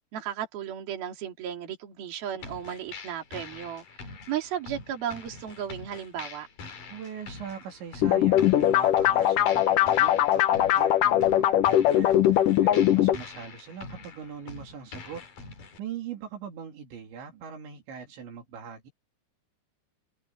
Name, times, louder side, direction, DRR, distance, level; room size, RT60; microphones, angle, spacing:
voice 1, 0.1-3.8 4.3-6.5, right 10 dB, 55° right, 4.8 m, -34 dB
sound 1, 2.4-15.8, left 4 dB, 50° left, 5.0 m, -44 dB
voice 2, 6.9-15.3 15.8-18.9, right 7 dB, 75° right, 5.4 m, -41 dB
sound 2, 8.0-13.2, left 12 dB, 70° left, 2.0 m, -21 dB
omnidirectional pair, 5.3 m